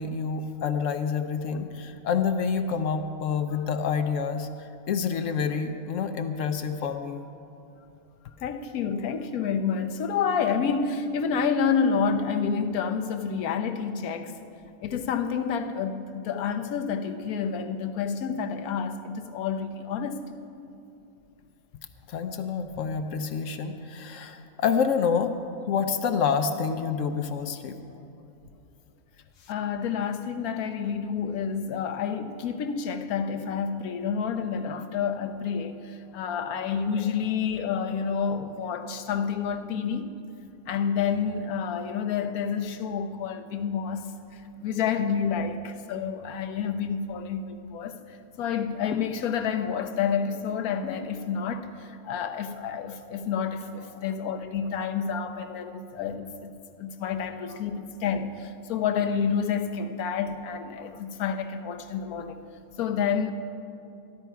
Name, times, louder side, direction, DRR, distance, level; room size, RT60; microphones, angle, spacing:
voice 1, 0.0-7.2 22.1-25.4 25.7-27.8 60.8-60.9, left 6 dB, 65° left, 0.9 m, -28 dB
voice 2, 8.4-14.4 14.8-20.3 29.5-40.1 40.7-62.4 62.8-63.3, left 6 dB, 80° left, 1.2 m, -29 dB
13.5 x 12.0 x 4.6 m
omnidirectional pair, 1.5 m